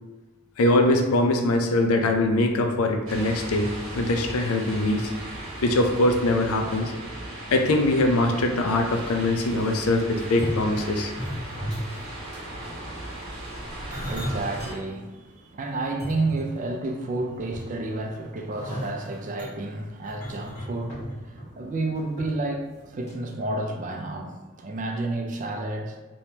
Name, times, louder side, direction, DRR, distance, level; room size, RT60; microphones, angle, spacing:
voice 1, 0.6-3.7 3.9-5.1 5.6-6.9 7.5-11.1, left 2 dB, 80° left, 4 dB, 0.5 m, -22 dB
sound 1, 3.1-14.7, right 1 dB, 65° right, 1.0 m, -37 dB
sound 2, 9.1-9.5 10.3-12.0 12.3-12.6 13.4-14.8 15.2-15.3 15.8-16.8 17.2-17.9 18.5-22.3 22.6-22.8 23.1-23.2, equal, 30° left, 1.4 m, -35 dB
voice 2, 12.4-26.0, right 2 dB, 35° right, 2 dB, 0.4 m, -31 dB
3.5 x 3.0 x 2.8 m, 1.2 s
head